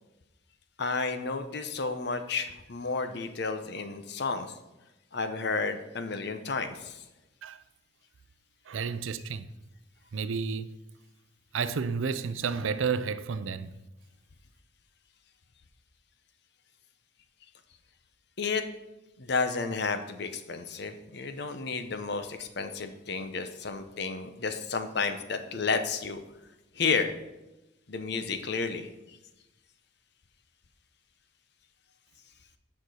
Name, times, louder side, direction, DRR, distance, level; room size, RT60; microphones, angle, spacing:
voice 1, 0.8-4.5 5.1-7.0 18.4-18.6 19.2-26.2 26.7-27.1 27.9-29.2, left 4 dB, 60° left, 0.8 m, -32 dB
voice 2, 8.7-9.5 10.1-10.7 11.5-13.7, right 5 dB, 85° right, 0.5 m, -31 dB
9.2 x 6.0 x 4.8 m
head